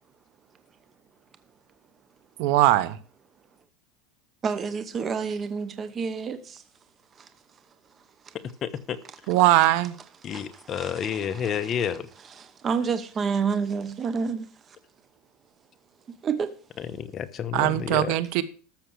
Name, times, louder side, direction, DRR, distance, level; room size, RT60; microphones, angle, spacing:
voice 1, 2.4-3.0 9.3-9.9 17.5-18.4, right 15 dB, 60° right, 1.2 m, -20 dB
voice 2, 4.4-6.6 7.2-7.3 8.3-8.4 10.3-11.5 12.4-14.5 16.2-16.5, right 5 dB, 25° right, 0.9 m, -29 dB
voice 3, 8.6-9.0 10.2-12.1 16.8-18.1, left 8 dB, 30° left, 1.0 m, -30 dB
13.5 x 6.6 x 6.4 m
supercardioid pair, 150°, 0 cm